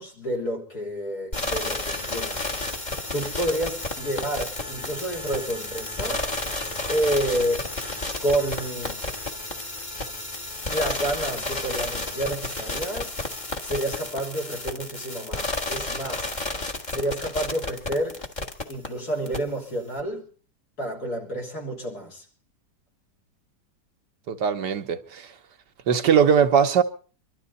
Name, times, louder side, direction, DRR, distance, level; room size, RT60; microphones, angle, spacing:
voice 1, 0.0-2.6 3.1-6.6 6.9-7.7 8.2-9.0 10.7-13.2 13.6-16.3 16.9-18.2 18.7-20.2 20.8-22.2, right 1 dB, 65° left, 3.9 m, -29 dB
sound 1, 1.3-18.9 19.3-19.4, left 2 dB, 25° left, 1.6 m, -31 dB
voice 2, 24.3-25.3 25.9-26.8, right 7 dB, 80° right, 1.7 m, -20 dB
24.5 x 13.0 x 4.1 m
omnidirectional pair, 1.8 m